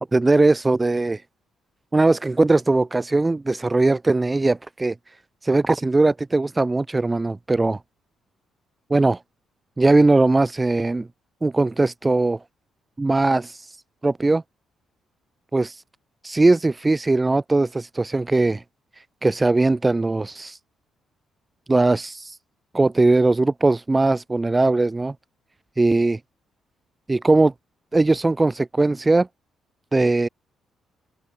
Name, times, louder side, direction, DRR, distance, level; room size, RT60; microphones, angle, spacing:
voice 1, 0.1-1.2 1.9-4.9 5.4-7.8 8.9-9.2 9.8-11.1 11.4-12.4 13.0-13.8 14.0-14.4 15.5-15.8 16.2-18.6 19.2-20.6 21.7-22.4 22.7-25.1 25.8-26.2 27.1-27.5 27.9-29.3 29.9-30.3, right 2 dB, 20° right, 7.9 m, -19 dB
open air
cardioid pair, 90°, 0 cm